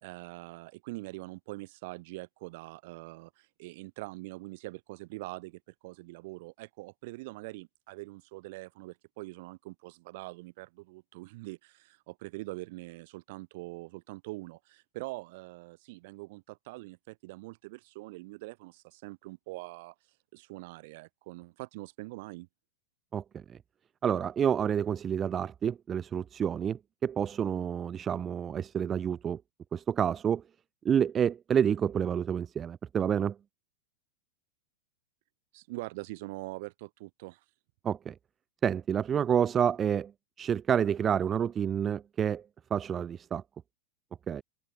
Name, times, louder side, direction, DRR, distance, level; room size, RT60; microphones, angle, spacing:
voice 1, 0.0-19.9 20.3-22.5 35.5-37.4, right 22 dB, 50° right, 2.0 m, -43 dB
voice 2, 23.1-23.4 24.0-29.4 29.7-30.4 30.8-33.4 37.8-38.1 38.6-40.1 40.4-42.4 42.7-43.4 44.3-44.4, right 8 dB, 25° right, 0.6 m, -28 dB
figure-of-eight pair, 90°, 0 cm